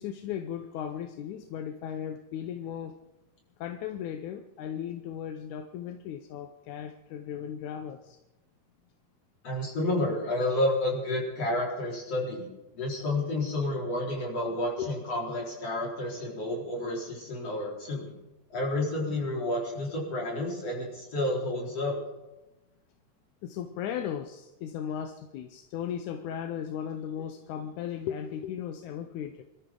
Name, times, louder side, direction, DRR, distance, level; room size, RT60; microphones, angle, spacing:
voice 1, 0.0-2.9 3.6-8.2 14.8-14.9 23.4-29.4, left 9 dB, 85° left, 7 dB, 2.2 m, -36 dB
voice 2, 9.4-12.5 12.7-18.1 18.5-22.0, left 1 dB, 55° left, -3 dB, 5.5 m, -30 dB
27.5 x 13.5 x 3.8 m, 1.0 s
omnidirectional pair, 3.4 m